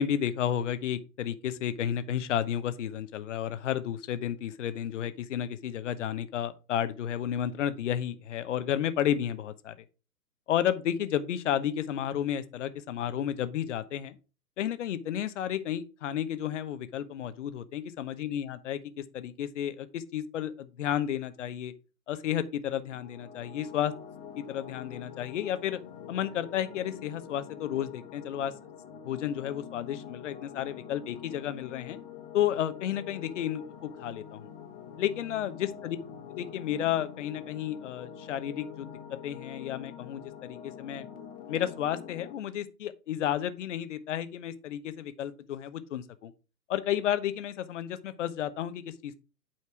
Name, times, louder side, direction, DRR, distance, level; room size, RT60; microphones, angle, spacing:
voice 1, 0.0-9.7 10.5-14.2 14.6-21.7 22.1-23.9 24.4-25.8 26.1-28.5 29.0-32.0 32.3-34.5 35.0-36.0 36.3-38.9 39.2-41.0 41.5-46.3 46.7-49.2, left 10 dB, 50° left, 1.0 m, -32 dB
sound 1, 22.9-42.3, left 8 dB, 35° left, 1.3 m, -45 dB
8.7 x 4.5 x 4.6 m
figure-of-eight pair, 125°, 48 cm